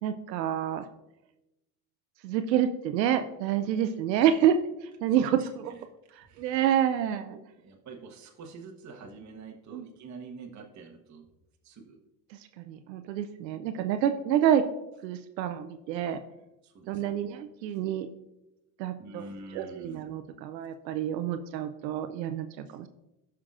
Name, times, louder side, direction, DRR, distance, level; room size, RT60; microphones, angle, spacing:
voice 1, 0.0-0.8 2.2-4.7 5.0-5.7 6.2-7.4 9.7-9.9 12.6-14.7 15.0-16.2 16.9-18.1 18.8-19.3 19.5-22.5 22.8-22.9, right 9 dB, 90° right, 9 dB, 0.6 m, -28 dB
voice 2, 5.1-5.8 6.3-6.6 7.3-11.3 11.6-12.0 16.6-17.0 19.0-20.0 22.7-22.8, right 4 dB, 35° right, 1 dB, 1.3 m, -46 dB
12.5 x 5.8 x 2.5 m, 0.94 s
hypercardioid pair, 75°, 49 cm